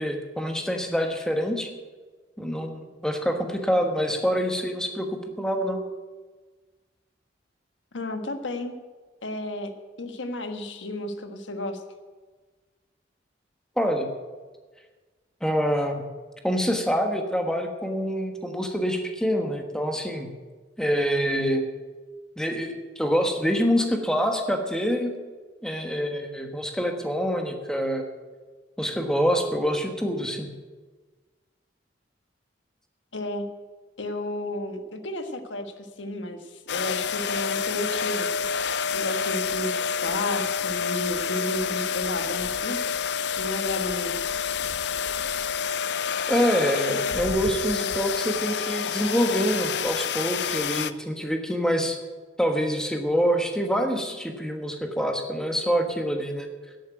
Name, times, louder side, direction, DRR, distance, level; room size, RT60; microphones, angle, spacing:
voice 1, 0.0-1.7 2.4-5.1 5.4-5.8 13.8-14.1 15.4-16.0 16.4-20.3 20.8-21.7 22.4-25.1 25.6-28.0 28.8-30.5 46.3-52.0 52.4-56.5, equal, 5° left, 4 dB, 1.3 m, -26 dB
voice 2, 7.9-8.7 9.2-9.7 10.0-11.8 33.1-33.5 34.0-38.3 38.9-42.8 43.4-44.3, left 1 dB, 85° left, 7 dB, 1.4 m, -32 dB
sound 1, 36.7-50.9, left 6 dB, 60° left, 0.5 m, -28 dB
11.0 x 8.5 x 9.0 m, 1.4 s
head